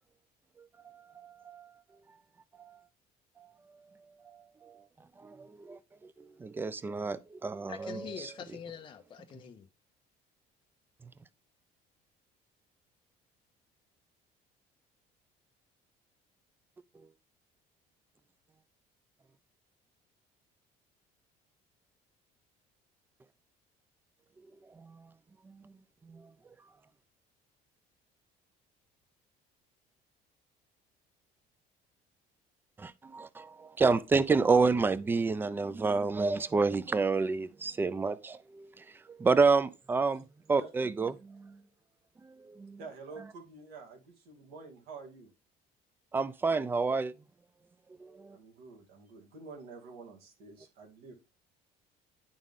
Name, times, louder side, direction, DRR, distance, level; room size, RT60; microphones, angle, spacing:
voice 1, 1.2-1.7 5.2-5.8 6.4-8.0 24.8-25.0 25.5-25.6 26.1-26.2 32.8-38.8 39.2-40.2 40.5-41.6 42.2-42.8 46.1-47.1 48.0-48.4, right 4 dB, 15° right, 0.3 m, -29 dB
voice 2, 7.7-9.7, left 8 dB, 30° left, 0.7 m, -44 dB
voice 3, 42.8-45.3 48.3-51.1, right 4 dB, 80° right, 2.4 m, -48 dB
10.5 x 3.7 x 3.7 m
cardioid pair, 145°, 16 cm